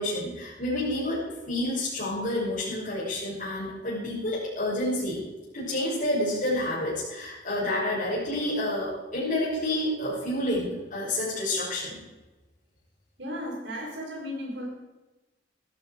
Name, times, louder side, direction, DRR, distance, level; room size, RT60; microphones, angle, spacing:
voice 1, 0.0-5.2 5.5-12.0, left 1 dB, 45° left, -10 dB, 6.3 m, -29 dB
voice 2, 13.2-14.7, equal, 70° right, -1 dB, 5.6 m, -35 dB
15.0 x 13.0 x 5.0 m, 1.1 s
head